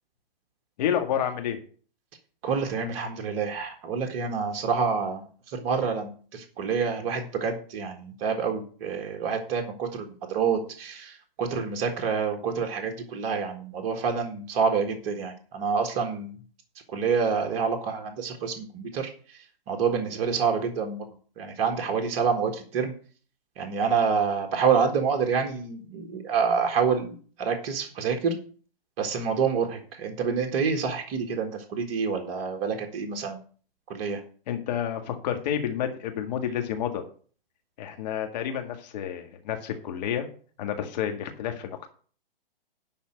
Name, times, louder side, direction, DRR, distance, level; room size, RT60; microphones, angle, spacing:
voice 1, 0.8-1.6 34.5-37.0 37.8-40.3 40.6-41.9, left 9 dB, 45° left, 5 dB, 1.9 m, -29 dB
voice 2, 2.4-16.3 16.9-19.4 19.7-21.0 21.4-22.9 23.6-28.4 29.0-33.4 33.9-34.2, right 6 dB, 35° right, 3 dB, 1.7 m, -27 dB
11.0 x 4.3 x 7.8 m, 0.43 s
hypercardioid pair, 125°, 29 cm